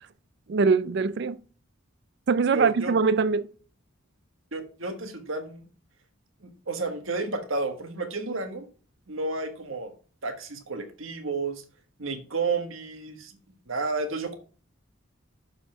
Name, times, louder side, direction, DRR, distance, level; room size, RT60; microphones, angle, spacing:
voice 1, 0.5-1.4 2.3-3.5, right 5 dB, 50° right, 0.4 m, -22 dB
voice 2, 2.5-2.9 4.5-5.7 6.4-8.7 9.1-9.9 10.2-11.6 12.0-14.3, right 3 dB, 70° right, 1.5 m, -31 dB
6.9 x 5.5 x 5.8 m
head